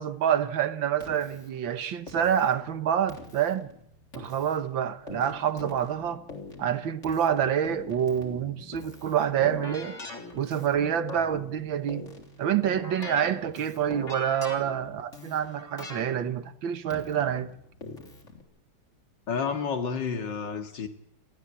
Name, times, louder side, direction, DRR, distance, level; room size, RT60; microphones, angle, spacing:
voice 1, 0.0-3.7 4.1-6.2 6.6-10.0 10.4-12.1 12.4-17.5, right 9 dB, 65° right, 1.9 m, -27 dB
Keyboard (musical), 1.0-18.4, left 3 dB, 35° left, 3.9 m, -43 dB
voice 2, 19.3-20.9, left 6 dB, 60° left, 2.6 m, -30 dB
29.0 x 13.5 x 8.4 m
omnidirectional pair, 2.3 m